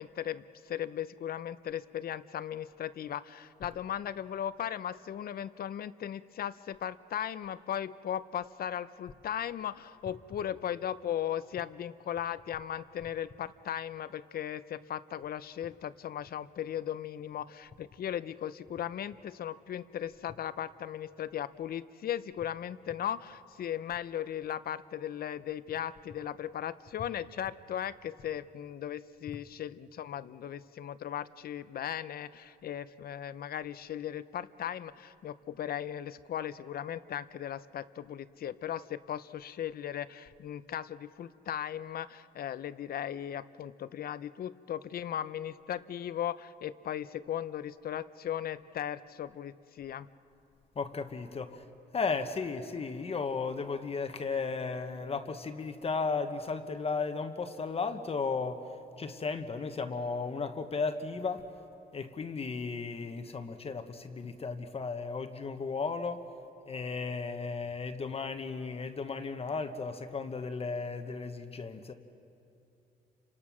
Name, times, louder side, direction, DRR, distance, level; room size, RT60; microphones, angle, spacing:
voice 1, 0.0-50.1, left 10 dB, 60° left, 15 dB, 0.7 m, -37 dB
voice 2, 50.7-51.6 51.9-61.4 61.9-66.3 66.7-71.9, left 4 dB, 35° left, 7 dB, 1.2 m, -35 dB
30.0 x 26.5 x 6.2 m, 2.7 s
cardioid pair, 120°, 18 cm